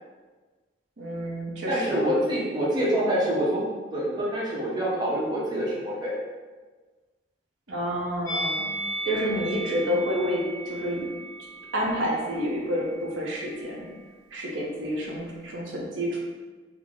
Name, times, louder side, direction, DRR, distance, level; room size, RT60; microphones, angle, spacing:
voice 1, 1.0-2.2 7.7-8.8 9.0-11.1 11.7-13.9 14.3-16.2, equal, 80° right, -2 dB, 0.6 m, -29 dB
voice 2, 1.7-3.6 3.9-6.1, equal, 25° right, -6 dB, 0.7 m, -26 dB
Musical instrument, 8.2-13.5 13.7-14.0, right 1 dB, 15° left, 0.9 m, -36 dB
3.6 x 2.0 x 3.5 m, 1.3 s
head